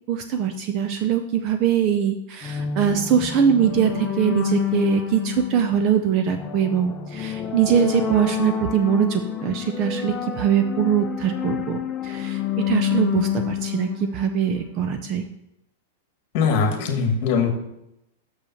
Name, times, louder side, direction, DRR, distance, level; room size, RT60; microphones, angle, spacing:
voice 1, 0.1-12.4 12.7-15.2, right 8 dB, 30° right, 7 dB, 0.5 m, -22 dB
sound 1, 2.4-14.9, left 9 dB, 15° left, 0.6 m, -28 dB
voice 2, 16.3-17.5, left 5 dB, 35° left, 4 dB, 1.5 m, -21 dB
6.4 x 5.3 x 6.9 m, 0.84 s
supercardioid pair, 170°, 0 cm